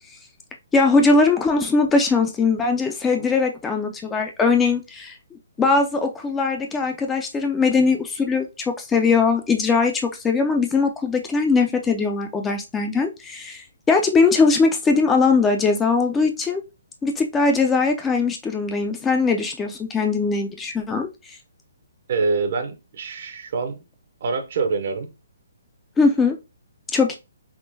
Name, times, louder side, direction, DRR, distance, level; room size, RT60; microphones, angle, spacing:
voice 1, 0.7-5.1 5.6-16.6 17.0-21.1 26.0-26.4 26.9-27.2, left 4 dB, 10° left, 0.4 m, -20 dB
voice 2, 22.1-23.8 24.2-25.1, right 4 dB, 55° right, 0.7 m, -25 dB
3.6 x 2.5 x 2.6 m
hypercardioid pair, 150°, 0 cm